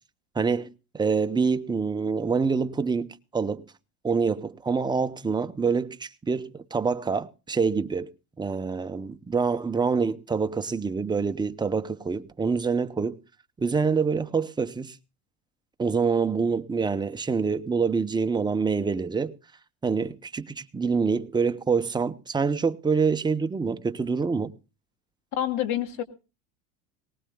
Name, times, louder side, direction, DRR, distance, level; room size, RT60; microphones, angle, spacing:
voice 1, 0.3-3.6 4.0-8.1 8.4-13.2 13.6-14.9 15.8-19.3 19.8-24.5, right 5 dB, 15° right, 0.7 m, -26 dB
voice 2, 25.4-26.0, left 11 dB, 60° left, 2.2 m, -27 dB
20.0 x 18.5 x 2.3 m
supercardioid pair, 100°, 34 cm